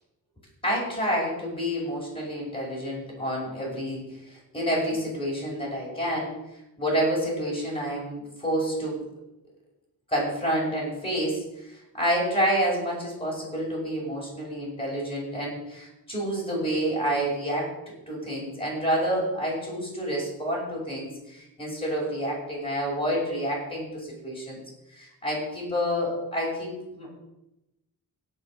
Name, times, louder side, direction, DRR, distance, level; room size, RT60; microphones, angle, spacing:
voice 1, 0.6-4.0 4.3-6.3 6.8-9.0 10.1-17.7 18.1-24.6 25.0-27.1, equal, 15° left, -4 dB, 5.8 m, -28 dB
17.0 x 6.4 x 6.4 m, 0.93 s
wide cardioid pair, 150°, 38 cm